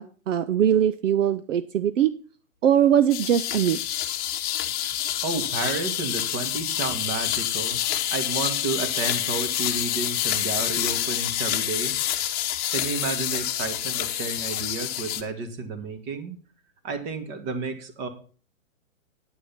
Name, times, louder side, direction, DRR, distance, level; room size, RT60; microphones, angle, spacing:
voice 1, 0.0-2.1 2.6-3.8, right 9 dB, 70° right, 13 dB, 0.8 m, -21 dB
sound 1, 3.1-15.2, left 12 dB, 25° left, 1.2 m, -27 dB
voice 2, 5.2-7.8 8.1-11.9 12.7-16.3 16.8-18.1, right 4 dB, 35° right, 8 dB, 2.3 m, -31 dB
9.9 x 9.0 x 5.8 m, 0.40 s
hypercardioid pair, 140°, 40 cm